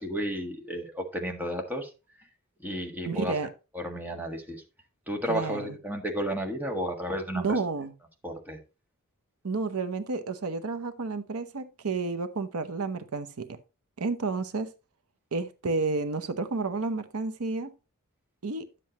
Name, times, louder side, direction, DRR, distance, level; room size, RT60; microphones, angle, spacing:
voice 1, 0.0-1.9 2.6-3.3 3.7-4.6 5.1-7.6 8.2-8.6, equal, 10° right, 1.6 m, -32 dB
voice 2, 3.1-3.5 5.3-5.8 7.3-7.9 9.4-13.6 14.0-14.7 15.3-17.7 18.4-18.7, right 3 dB, 90° right, 0.8 m, -31 dB
11.0 x 7.6 x 3.0 m
head